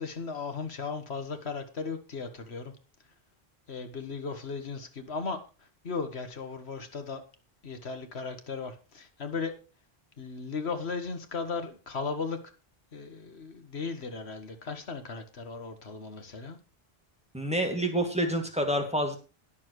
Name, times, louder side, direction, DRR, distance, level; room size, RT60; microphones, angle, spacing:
voice 1, 0.0-2.7 3.7-5.4 5.8-7.2 7.6-9.5 10.2-12.4 12.9-16.6, left 4 dB, 85° left, 1.8 m, -36 dB
voice 2, 17.3-19.2, right 1 dB, 5° right, 2.3 m, -28 dB
20.0 x 7.3 x 3.1 m
omnidirectional pair, 1.1 m